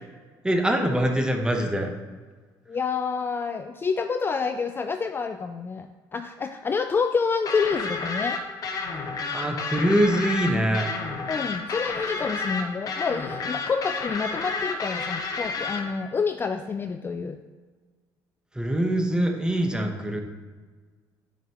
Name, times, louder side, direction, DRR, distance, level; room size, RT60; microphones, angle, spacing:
voice 1, 0.4-1.9 9.3-10.9 18.5-20.2, right 1 dB, 10° right, 3 dB, 1.0 m, -23 dB
voice 2, 2.7-8.4 11.3-17.4, left 5 dB, 25° left, 8 dB, 0.3 m, -28 dB
sound 1, 7.5-15.8, left 4 dB, 45° left, 1.1 m, -30 dB
9.1 x 5.2 x 3.0 m, 1.5 s
supercardioid pair, 85°, 9 cm